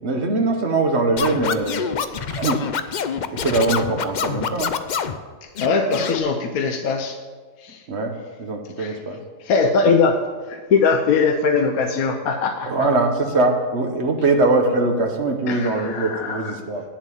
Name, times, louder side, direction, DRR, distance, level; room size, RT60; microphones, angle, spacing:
voice 1, 0.0-1.9 2.3-2.7 3.3-4.7 7.9-9.2 12.6-16.8, right 2 dB, 50° right, 4 dB, 1.3 m, -22 dB
Scratching (performance technique), 1.2-5.2 5.6-6.2, left 7 dB, 70° left, 0.4 m, -26 dB
voice 2, 5.4-7.2 7.6-7.8 8.8-9.0 9.4-12.9 15.5-16.5, left 4 dB, 85° left, 4 dB, 1.2 m, -21 dB
9.0 x 7.4 x 7.1 m, 1.5 s
omnidirectional pair, 1.5 m